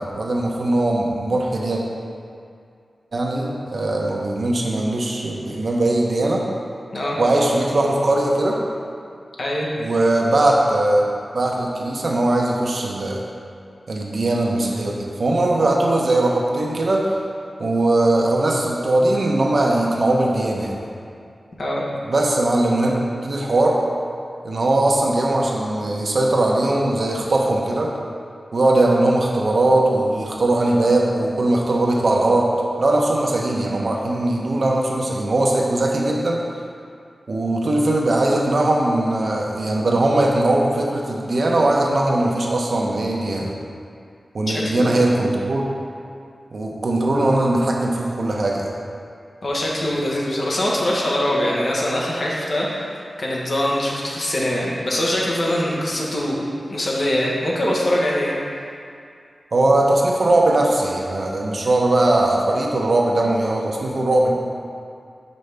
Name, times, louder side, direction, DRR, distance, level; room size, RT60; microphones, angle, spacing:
voice 1, 0.0-1.8 3.1-6.4 7.2-8.6 9.8-13.2 13.9-17.0 17.6-20.7 22.1-22.9 23.2-23.8 24.4-27.9 28.5-32.5 32.8-36.4 37.3-43.5 44.3-45.6 46.5-48.7 59.5-64.3, right 2 dB, 65° right, -1 dB, 0.7 m, -20 dB
voice 2, 44.5-45.1 49.4-58.4, left 1 dB, 60° left, -4 dB, 1.0 m, -23 dB
5.3 x 5.3 x 3.4 m, 2.4 s
wide cardioid pair, 85°, 0 cm